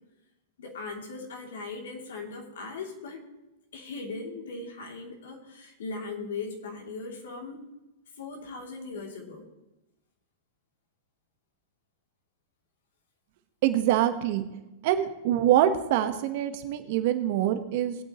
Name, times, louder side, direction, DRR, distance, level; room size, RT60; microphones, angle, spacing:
voice 1, 0.6-3.2 3.7-7.6 8.1-9.5, left 3 dB, 75° left, 0 dB, 2.9 m, -39 dB
voice 2, 13.6-14.4 14.8-18.0, right 11 dB, 60° right, 8 dB, 1.2 m, -25 dB
19.5 x 8.5 x 3.1 m, 0.99 s
hypercardioid pair, 110°, 0 cm